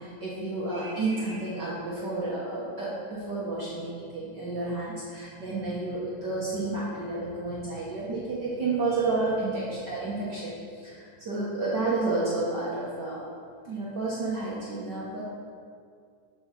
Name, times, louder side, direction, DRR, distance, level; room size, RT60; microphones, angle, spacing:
voice 1, 0.0-13.2 13.6-15.2, right 3 dB, 70° right, -7 dB, 1.0 m, -31 dB
7.7 x 4.4 x 6.0 m, 2.2 s
omnidirectional pair, 3.5 m